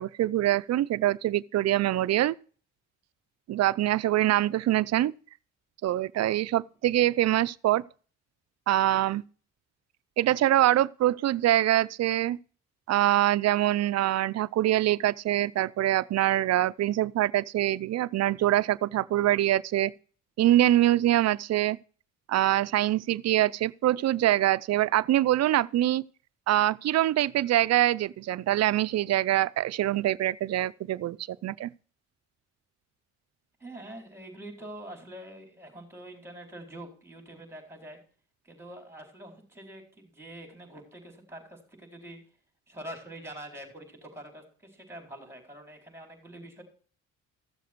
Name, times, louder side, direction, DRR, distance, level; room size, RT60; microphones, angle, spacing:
voice 1, 0.0-2.4 3.5-5.1 5.8-7.8 8.7-9.2 10.2-12.4 12.9-19.9 20.4-21.8 22.3-26.0 26.5-31.7, right 13 dB, 60° right, 0.5 m, -24 dB
voice 2, 33.6-38.0 38.4-42.2 42.7-46.6, right 1 dB, 10° right, 4.3 m, -45 dB
14.5 x 7.1 x 4.6 m
cardioid pair, 90°, 30 cm